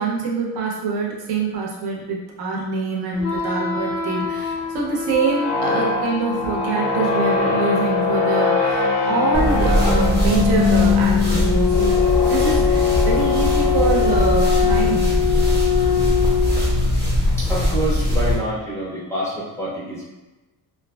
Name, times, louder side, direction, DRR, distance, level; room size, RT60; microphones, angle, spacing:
voice 1, 0.0-12.0 12.3-15.2, right 4 dB, 70° right, -2 dB, 0.7 m, -25 dB
sound 1, 3.2-16.9, left 6 dB, 60° left, 0.5 m, -21 dB
sound 2, 9.3-18.3, equal, 25° right, 0.7 m, -21 dB
voice 2, 17.4-20.1, right 1 dB, 5° left, -8 dB, 0.5 m, -27 dB
2.6 x 2.5 x 2.2 m, 1.1 s
cardioid pair, 155°, 40 cm